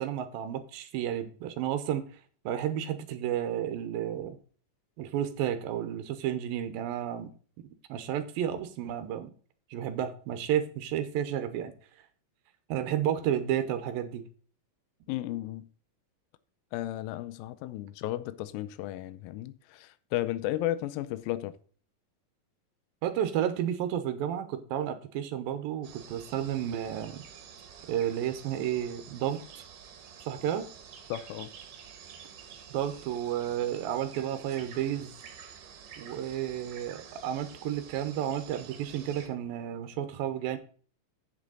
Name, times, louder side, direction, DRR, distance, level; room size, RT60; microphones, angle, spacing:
voice 1, 0.0-2.0 2.5-4.4 5.0-7.3 7.9-9.3 9.7-11.7 12.7-14.2 23.0-27.2 27.9-29.6 30.2-30.7 32.7-35.2 36.0-40.6, right 10 dB, 90° right, 2.6 m, -32 dB
voice 2, 15.1-15.7 16.7-21.5 31.1-31.5, left 14 dB, 85° left, 2.4 m, -34 dB
sound 1, 25.8-39.3, right 7 dB, 65° right, 2.7 m, -49 dB
8.2 x 7.4 x 3.9 m
omnidirectional pair, 4.1 m